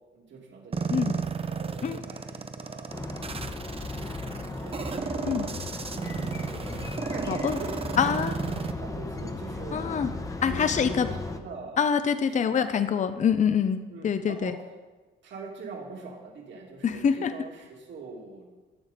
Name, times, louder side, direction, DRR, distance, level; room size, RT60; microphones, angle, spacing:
voice 1, 0.1-3.1 3.9-5.3 6.0-6.7 7.0-9.9 10.4-11.8 12.3-12.7 13.9-14.6 15.2-18.6, right 3 dB, 65° right, -1 dB, 2.5 m, -43 dB
sound 1, 0.7-8.7, right 5 dB, 30° right, 0.7 m, -33 dB
sound 2, 2.9-11.4, left 2 dB, 15° left, 1.0 m, -36 dB
voice 2, 7.3-7.6 8.0-8.4 9.7-10.1 10.4-11.1 11.8-14.5 16.8-17.3, left 7 dB, 40° left, 11 dB, 0.6 m, -25 dB
13.0 x 7.7 x 4.1 m, 1.2 s
cardioid pair, 90°, 20 cm